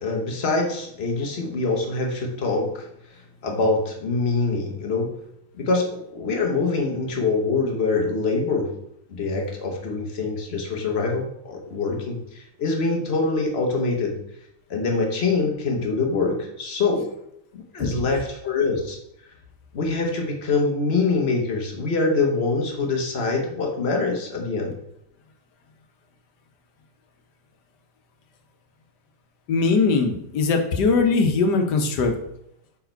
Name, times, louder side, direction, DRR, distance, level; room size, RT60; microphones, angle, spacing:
voice 1, 0.0-2.9 3.4-5.1 5.5-8.7 9.1-14.1 14.7-17.1 17.5-19.0 19.7-24.7, left 3 dB, 45° left, 2 dB, 1.2 m, -24 dB
voice 2, 29.5-32.1, left 4 dB, 80° left, 5 dB, 1.5 m, -20 dB
5.4 x 4.7 x 4.5 m, 0.77 s
omnidirectional pair, 1.8 m